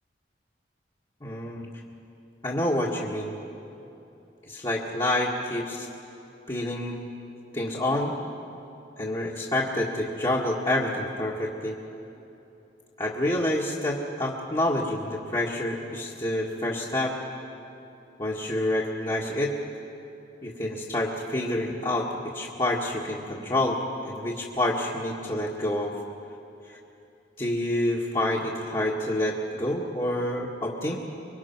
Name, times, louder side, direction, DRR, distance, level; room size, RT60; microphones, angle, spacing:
voice 1, 1.2-1.7 2.4-3.4 4.5-5.9 6.5-7.1 7.5-8.2 9.0-11.7 13.0-17.2 18.2-19.5 20.4-22.1 22.3-23.8 24.1-26.0 26.7-26.8 27.4-31.0, left 1 dB, 25° left, -4 dB, 1.8 m, -28 dB
26.0 x 23.0 x 6.0 m, 2.9 s
head